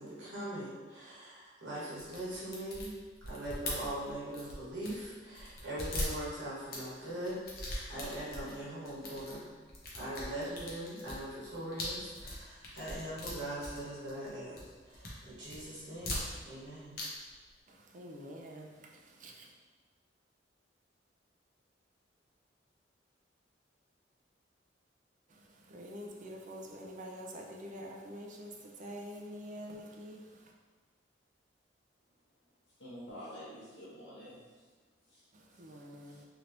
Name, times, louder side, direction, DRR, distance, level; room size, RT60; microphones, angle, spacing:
voice 1, 0.0-2.9 3.2-7.4 7.9-9.5 9.9-17.0, right 1 dB, 85° right, -8 dB, 1.2 m, -41 dB
sound 1, 2.0-5.1 5.4-6.8 7.3-8.5 8.9-9.4 9.7-14.3 14.6-15.1 15.4-16.7 16.9-17.1 17.3-17.4, left 1 dB, 55° left, 0.8 m, -40 dB
voice 2, 17.7-19.5 25.3-30.5 35.3-36.2, equal, 45° right, 0 dB, 0.4 m, -47 dB
voice 3, 32.8-34.6 35.1-35.2 36.0-36.2, equal, 85° left, -9 dB, 1.0 m, -48 dB
3.2 x 2.9 x 2.5 m, 1.4 s
head